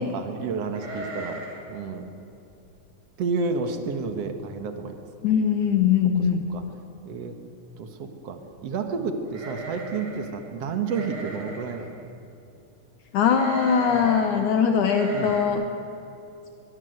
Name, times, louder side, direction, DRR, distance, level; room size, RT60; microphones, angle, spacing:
voice 1, 0.0-1.4 1.7-2.1 3.2-5.0 6.5-6.6 7.0-7.4 7.8-11.9 13.9-14.1 15.1-15.4, right 4 dB, 60° right, 6 dB, 1.6 m, -30 dB
sound 1, 0.7-1.7 2.0-2.1 2.5-2.8 3.3-3.4 3.7-4.2 4.6-4.7 5.8-5.9 6.2-6.6 9.3-10.3 10.9-11.8 13.3-14.3 14.8-15.4, right 2 dB, 15° right, 3.9 m, -36 dB
voice 2, 5.2-6.4 13.1-15.6, left 7 dB, 75° left, 5 dB, 1.8 m, -21 dB
23.5 x 23.0 x 8.0 m, 2.9 s
omnidirectional pair, 5.1 m